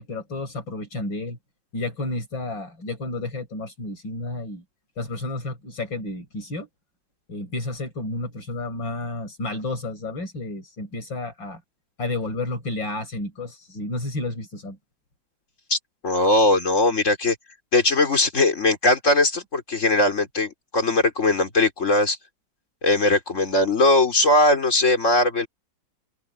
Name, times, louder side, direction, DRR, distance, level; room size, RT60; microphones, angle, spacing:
voice 1, 0.0-1.4 1.7-4.6 5.0-6.7 7.3-11.6 12.0-14.8, left 2 dB, 75° left, 6.8 m, -31 dB
voice 2, 16.0-17.4 17.7-22.2 22.8-25.5, left 2 dB, 40° left, 4.0 m, -20 dB
open air
omnidirectional pair, 2.1 m